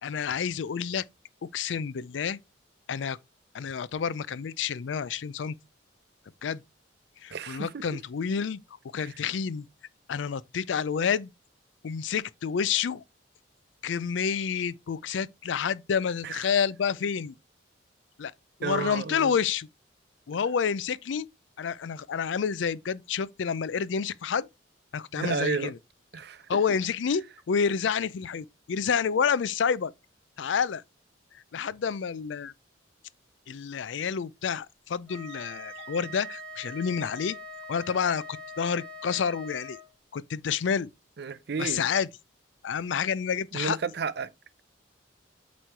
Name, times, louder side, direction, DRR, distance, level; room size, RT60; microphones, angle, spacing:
voice 1, 0.0-1.0 1.5-2.4 2.9-3.2 3.5-5.6 6.4-6.6 7.2-8.6 8.9-9.7 10.1-11.3 11.8-13.0 13.8-17.3 18.2-18.3 18.6-19.7 20.3-21.3 21.6-24.5 24.9-25.8 26.5-29.9 30.4-30.8 31.3-32.5 33.5-37.4 37.7-38.2 38.6-39.8 40.1-40.9 41.6-42.1 42.6-43.8, left 6 dB, 70° left, 0.4 m, -29 dB
voice 2, 7.3-7.8 9.0-9.2 16.2-16.4 18.6-19.3 25.2-25.7 26.1-26.4 41.2-41.8 43.5-44.3, right 5 dB, 55° right, 0.5 m, -32 dB
Wind instrument woodwind instrument, 35.1-39.9, equal, 10° left, 2.1 m, -43 dB
8.1 x 3.1 x 4.4 m
head